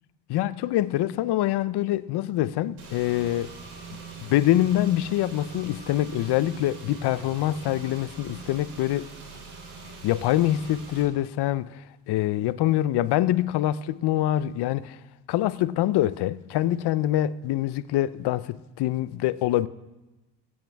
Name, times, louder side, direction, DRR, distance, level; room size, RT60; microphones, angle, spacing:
voice 1, 0.3-3.5 4.2-9.1 10.0-15.0 15.3-19.7, left 14 dB, 65° left, 0.6 m, -25 dB
Car / Engine, 2.8-11.0, right 4 dB, 60° right, 3.4 m, -42 dB
22.5 x 8.4 x 3.5 m
cardioid pair, 100°, 43 cm